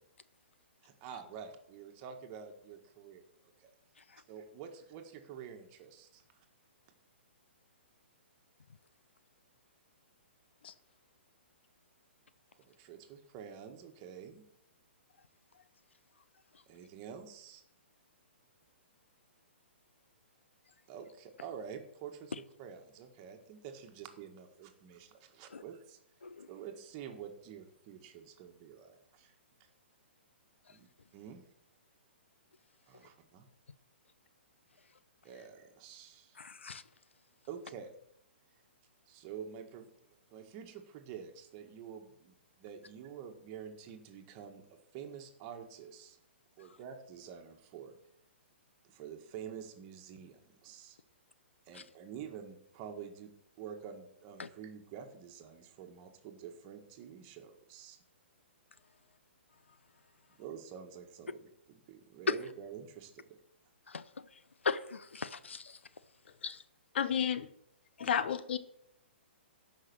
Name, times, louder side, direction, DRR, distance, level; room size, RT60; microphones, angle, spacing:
voice 1, 0.8-3.2 3.6-3.7 4.3-6.2 12.5-14.4 16.7-17.6 20.9-22.3 22.6-26.0 26.5-29.3 30.7-30.9 31.1-31.4 32.9-33.5 35.2-36.4 37.5-37.9 39.1-46.2 46.6-48.0 48.8-51.0 51.7-53.3 53.6-58.0 60.4-63.4, right 8 dB, 35° right, 5 dB, 1.7 m, -48 dB
voice 2, 36.4-36.8 51.7-51.8 54.4-54.5 62.3-62.4 63.9-64.0 64.6-65.8 66.4-66.6 68.0-68.1, left 4 dB, 90° left, 15 dB, 0.7 m, -36 dB
voice 3, 66.9-67.5 68.0-68.6, left 8 dB, 60° left, 14 dB, 0.9 m, -31 dB
13.0 x 5.8 x 6.2 m, 0.73 s
hypercardioid pair, 135°, 6 cm